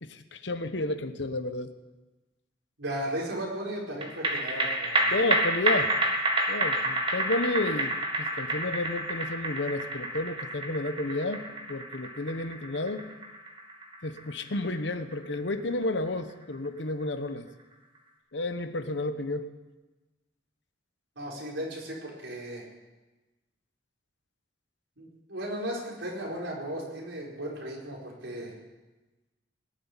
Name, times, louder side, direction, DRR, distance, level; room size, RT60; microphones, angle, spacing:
voice 1, 0.0-1.7 5.1-5.9 6.5-13.1 14.0-17.5 18.3-19.5, left 2 dB, 70° left, 10 dB, 1.0 m, -31 dB
voice 2, 2.8-5.1 21.2-22.7 25.0-28.5, right 1 dB, 80° right, -3 dB, 4.7 m, -36 dB
sound 1, 4.0-16.7 17.0-17.1, right 1 dB, 25° right, 1.8 m, -29 dB
19.0 x 7.6 x 9.8 m, 1.1 s
head